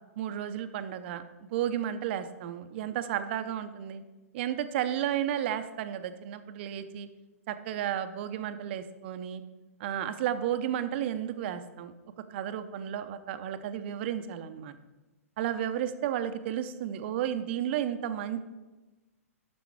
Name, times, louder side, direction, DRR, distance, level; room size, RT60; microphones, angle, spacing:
voice 1, 0.2-4.0 4.3-7.1 7.5-9.4 9.8-11.9 12.3-14.8 15.4-18.4, right 10 dB, 45° right, 10 dB, 0.7 m, -33 dB
10.5 x 7.0 x 4.6 m, 1.1 s
figure-of-eight pair, 115°, 8 cm